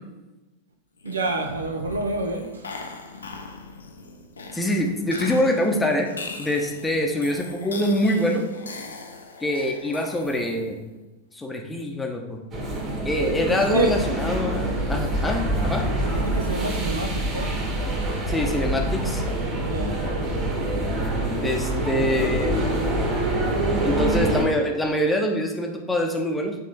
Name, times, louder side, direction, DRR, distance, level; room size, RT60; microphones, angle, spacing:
sound 1, 1.0-10.9, left 4 dB, 70° left, 0.7 m, -40 dB
voice 1, 1.0-2.7 13.5-14.0 15.8-17.6 19.6-20.0, right 2 dB, 70° right, 0.8 m, -28 dB
voice 2, 4.5-6.1 6.4-8.4 9.4-10.8 11.3-12.4 13.0-15.9 18.3-19.2 21.3-22.6 23.8-26.5, left 1 dB, 10° left, 0.9 m, -24 dB
sound 2, 12.5-24.4, right 1 dB, 30° right, 1.8 m, -25 dB
7.6 x 3.6 x 4.1 m
figure-of-eight pair, 90°, 0 cm